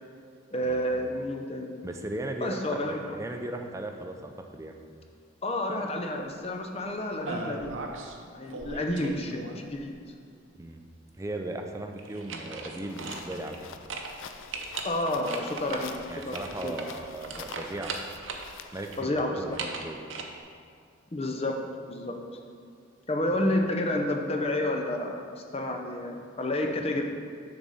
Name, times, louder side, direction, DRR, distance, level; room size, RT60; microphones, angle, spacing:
voice 1, 0.5-1.8 2.4-3.2 5.4-7.8 8.3-9.9 14.8-15.9 16.3-16.8 19.0-19.6 21.1-22.2 23.1-25.2 25.5-27.0, left 1 dB, 30° left, 3 dB, 0.6 m, -30 dB
voice 2, 1.8-4.8 10.6-10.8 11.2-13.6 16.1-18.0 18.7-20.0 23.3-23.4, right 1 dB, 15° right, 4 dB, 0.5 m, -37 dB
sound 1, 7.3-8.2 8.5-9.8 12.0-13.6 13.9-14.1 14.5-18.5 18.8-20.2, right 3 dB, 80° right, 0.7 m, -38 dB
sound 2, 12.9-19.0, left 6 dB, 80° left, 0.4 m, -46 dB
6.9 x 4.0 x 6.4 m, 2.3 s
head